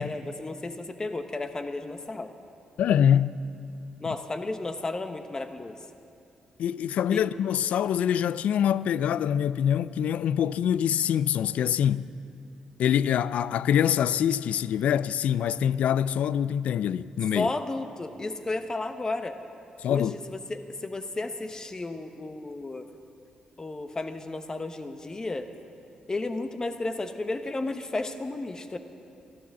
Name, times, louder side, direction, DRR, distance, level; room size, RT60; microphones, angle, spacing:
voice 1, 0.0-2.3 4.0-5.8 7.1-7.2 17.3-19.4 19.9-22.9 23.6-25.5 26.1-28.8, left 2 dB, 30° left, 1.1 m, -33 dB
voice 2, 2.8-3.4 6.6-12.1 12.8-17.5 19.8-20.1, left 9 dB, 75° left, 0.3 m, -25 dB
14.0 x 12.5 x 7.2 m
cardioid pair, 65°, 2 cm